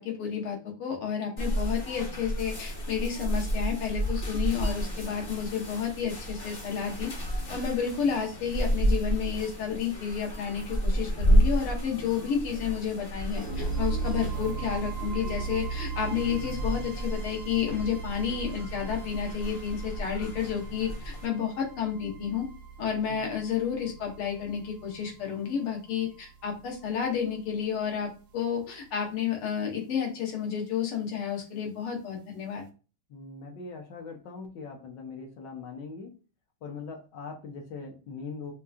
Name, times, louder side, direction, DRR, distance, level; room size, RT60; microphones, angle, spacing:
voice 1, 0.0-7.1 7.5-22.5 22.8-32.6, left 7 dB, 80° left, 1 dB, 2.0 m, -31 dB
sound 1, 1.4-21.3, equal, 40° left, 0.8 m, -31 dB
sound 2, 13.4-27.4, right 5 dB, 70° right, 0.9 m, -39 dB
voice 2, 33.1-36.2 36.6-38.5, left 4 dB, 65° left, 2 dB, 1.2 m, -41 dB
5.5 x 2.6 x 2.3 m, 0.33 s
omnidirectional pair, 2.4 m